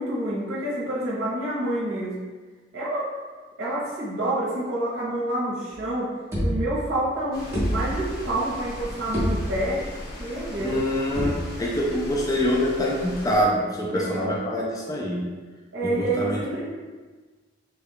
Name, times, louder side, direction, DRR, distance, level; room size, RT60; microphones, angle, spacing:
voice 1, 0.0-2.2 2.7-3.2 3.6-9.9 10.2-10.8 13.9-14.3 15.7-16.6, right 1 dB, 60° right, -8 dB, 0.9 m, -28 dB
sound 1, 5.7-5.9 6.3-7.1 7.5-8.3 8.7-8.8 9.1-9.9 11.1-11.8, equal, 15° right, 0.8 m, -28 dB
sound 2, 7.3-13.4, left 1 dB, 45° left, 0.8 m, -38 dB
voice 2, 10.6-11.3 11.6-15.2 15.8-16.4, equal, 15° left, -4 dB, 0.4 m, -25 dB
3.5 x 2.3 x 3.5 m, 1.4 s
head